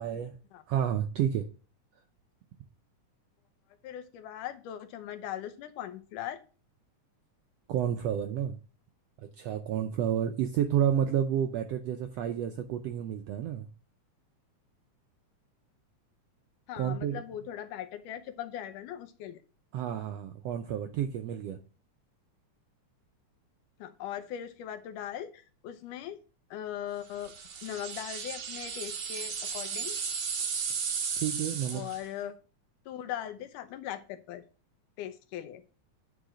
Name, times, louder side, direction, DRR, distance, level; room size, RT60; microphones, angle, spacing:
voice 1, 0.0-0.3 0.7-1.4 7.7-8.6 9.2-13.7 16.8-17.2 19.7-21.6 31.2-31.8, right 9 dB, 85° right, 6 dB, 1.4 m, -30 dB
voice 2, 3.8-6.4 16.7-19.4 23.8-26.2 26.5-27.3 27.6-30.0 31.7-32.4 32.9-34.4 35.0-35.6, left 11 dB, 90° left, 10 dB, 2.3 m, -39 dB
sound 1, 27.2-32.1, right 6 dB, 60° right, 2.5 m, -35 dB
9.0 x 4.7 x 4.9 m, 0.36 s
omnidirectional pair, 3.6 m